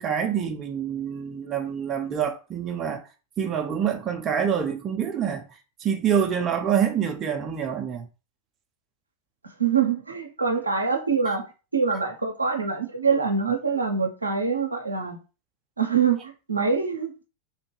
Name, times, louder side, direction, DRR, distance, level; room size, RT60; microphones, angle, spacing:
voice 1, 0.0-3.0 3.4-5.4 5.8-8.1, right 8 dB, 30° right, 0.4 m, -26 dB
voice 2, 9.4-11.4 11.7-15.2 15.8-17.1, right 5 dB, 80° right, 0.5 m, -24 dB
3.1 x 2.1 x 3.1 m
figure-of-eight pair, 90°, 0 cm